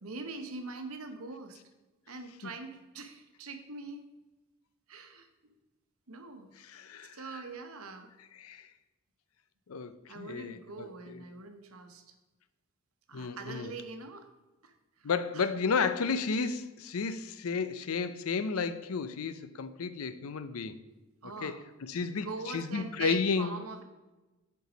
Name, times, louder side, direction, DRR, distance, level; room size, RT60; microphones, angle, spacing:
voice 1, 0.0-1.6 2.1-4.1 4.9-5.5 6.1-6.8 7.0-8.1 10.1-12.1 13.1-14.3 14.6-15.5 21.2-21.6 22.0-23.8, right 3 dB, 85° right, 7 dB, 1.0 m, -43 dB
voice 2, 6.6-7.2 8.4-8.7 9.7-10.9 13.1-13.7 15.0-20.8 21.4-21.6 21.9-22.3 22.5-23.5, left 5 dB, 85° left, 12 dB, 0.5 m, -32 dB
8.1 x 4.6 x 5.0 m, 1.1 s
head